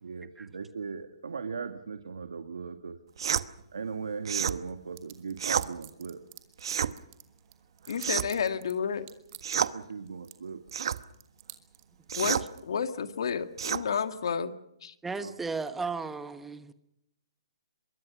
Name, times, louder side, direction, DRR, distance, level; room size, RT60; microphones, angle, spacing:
voice 1, 0.0-3.0 3.7-6.2 9.6-10.6 15.2-15.3, right 5 dB, 85° right, 1.8 m, -38 dB
sound 1, 3.2-3.5 4.2-4.6 5.4-5.7 6.6-6.9 8.0-8.4 9.4-9.7 10.7-11.0 12.1-12.5 13.6-13.8, right 8 dB, 65° right, 1.1 m, -29 dB
sound 2, 5.0-6.6 6.9-8.7 9.1-9.7 10.1-10.4 10.7-12.6, right 19 dB, 35° right, 2.3 m, -48 dB
voice 2, 7.9-9.1 12.1-14.6 14.8-14.9, left 6 dB, 65° left, 2.0 m, -31 dB
voice 3, 15.0-16.7, right 4 dB, 5° right, 1.2 m, -35 dB
24.5 x 23.0 x 6.1 m
hypercardioid pair, 155°, 3 cm